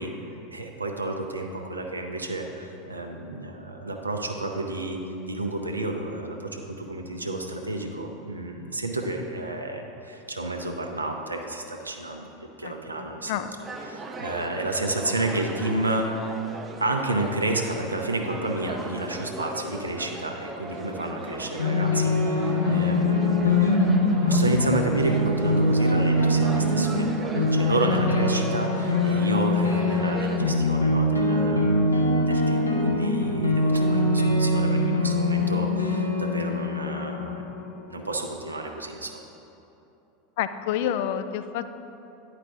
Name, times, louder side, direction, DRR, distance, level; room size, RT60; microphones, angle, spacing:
voice 1, 0.0-5.0 5.3-12.3 12.6-13.4 13.8-16.4 16.8-37.5 37.9-39.1, right 2 dB, 80° right, 3 dB, 0.6 m, -31 dB
voice 2, 12.6-13.5 40.4-41.7, left 10 dB, 55° left, 11 dB, 0.3 m, -29 dB
sound 1, 13.6-30.4, right 2 dB, 20° right, 0.6 m, -38 dB
sound 2, 21.6-37.8, left 1 dB, 85° left, 0.9 m, -23 dB
9.8 x 5.0 x 3.5 m, 2.9 s
figure-of-eight pair, 80°, 0 cm